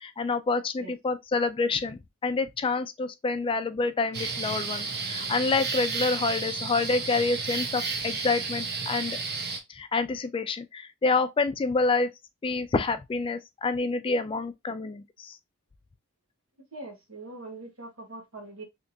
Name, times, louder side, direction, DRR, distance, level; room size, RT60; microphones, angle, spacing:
voice 1, 0.0-9.2 9.7-12.1 12.4-15.3, left 3 dB, 25° left, 0.3 m, -28 dB
sound 1, 4.1-9.6, right 4 dB, 50° right, 0.7 m, -32 dB
voice 2, 16.7-18.6, right 2 dB, 80° right, 1.3 m, -42 dB
3.4 x 2.9 x 2.7 m
head